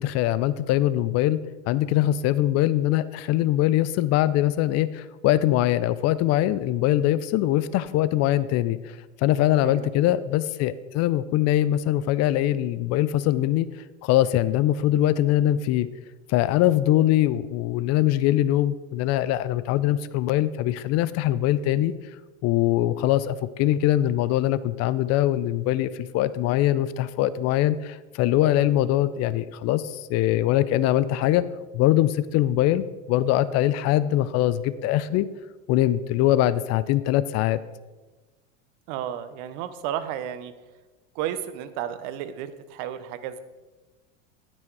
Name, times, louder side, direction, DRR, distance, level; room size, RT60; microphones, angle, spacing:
voice 1, 0.0-1.4 1.7-13.7 14.0-15.9 16.3-21.9 22.4-31.5 31.7-35.3 35.7-37.6, left 13 dB, 45° left, 16 dB, 0.5 m, -22 dB
voice 2, 38.9-40.5 41.1-43.4, right 10 dB, 60° right, 13 dB, 1.0 m, -32 dB
13.5 x 6.2 x 4.7 m, 1.2 s
hypercardioid pair, 105°, 37 cm